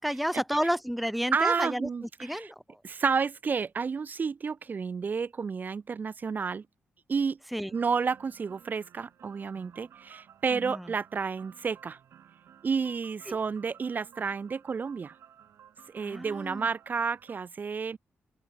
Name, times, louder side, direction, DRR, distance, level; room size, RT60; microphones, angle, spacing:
voice 1, 0.0-1.9 2.2-2.8 7.5-7.7 10.5-10.9 13.3-13.4 16.0-16.7, equal, ahead, 0.5 m, -31 dB
voice 2, 1.3-2.5 2.8-6.6 7.1-7.4 7.7-12.0 12.6-15.1 15.9-18.0, right 5 dB, 40° right, 0.8 m, -30 dB
sound 1, 7.7-17.4, right 9 dB, 80° right, 3.4 m, -56 dB
open air
cardioid pair, 100°, 4 cm